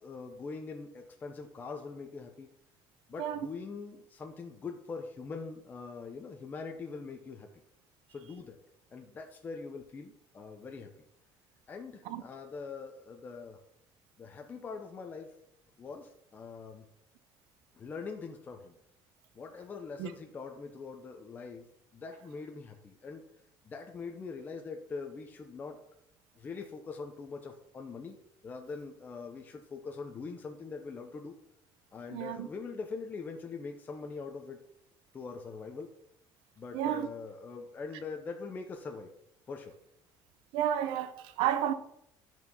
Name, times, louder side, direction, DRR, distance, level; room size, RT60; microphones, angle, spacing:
voice 1, 0.0-2.5 3.1-7.5 8.1-8.6 8.9-10.9 11.7-13.6 14.2-15.3 15.8-16.8 17.8-18.8 19.3-23.2 23.6-25.8 26.4-28.2 28.4-31.4 31.9-34.6 35.1-35.9 36.6-39.1 39.5-39.7, left 4 dB, 20° left, 0.6 m, -43 dB
voice 2, 32.1-32.5 36.7-37.1 40.5-41.7, right 10 dB, 80° right, 0.7 m, -31 dB
11.0 x 4.5 x 5.4 m
cardioid pair, 180°, 9 cm